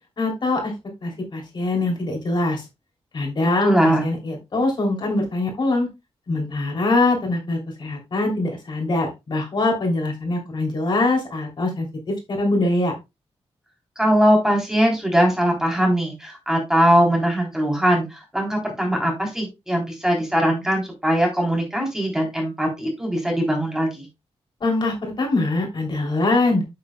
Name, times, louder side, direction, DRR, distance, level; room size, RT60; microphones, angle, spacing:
voice 1, 0.2-0.7 1.0-2.6 3.1-5.9 6.3-12.9 24.6-26.6, left 2 dB, 45° left, 1 dB, 3.1 m, -23 dB
voice 2, 3.6-4.1 14.0-24.1, equal, 5° right, 1 dB, 3.4 m, -21 dB
8.7 x 8.6 x 2.3 m, 0.23 s
wide cardioid pair, 150°, 11 cm